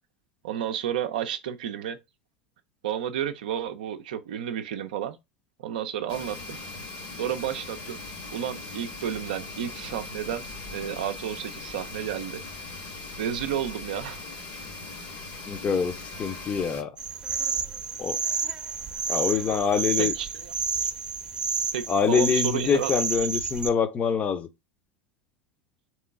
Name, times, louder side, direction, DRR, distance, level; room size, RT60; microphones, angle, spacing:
voice 1, 0.4-2.0 2.8-5.2 5.6-6.6 7.2-8.0 8.3-10.4 10.7-12.4 13.2-14.2 19.5-19.7 20.0-20.5 21.7-22.9, right 10 dB, 65° right, 0.5 m, -31 dB
Condenser Pumps with Bell, 6.1-16.8, left 2 dB, 50° left, 1.2 m, -40 dB
voice 2, 15.5-16.9 18.0-18.2 19.1-20.1 21.9-24.5, left 6 dB, 30° left, 0.7 m, -25 dB
sound 1, 17.0-23.7, right 5 dB, 20° right, 0.7 m, -30 dB
3.7 x 3.0 x 3.5 m
figure-of-eight pair, 80°, 5 cm